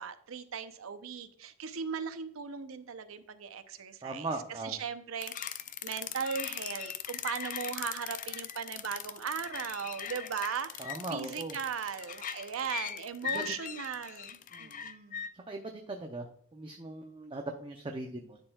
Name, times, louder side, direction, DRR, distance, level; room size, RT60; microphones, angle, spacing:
voice 1, 0.0-5.5 5.8-15.2, right 6 dB, 80° right, 10 dB, 0.6 m, -38 dB
voice 2, 4.0-4.7 10.8-11.6 13.3-13.5 14.5-14.8 15.5-16.3 16.5-18.4, right 2 dB, 25° right, 3 dB, 0.6 m, -39 dB
sound 1, 5.2-15.3, left 8 dB, 40° left, 0.4 m, -40 dB
11.0 x 4.4 x 2.3 m, 0.63 s
head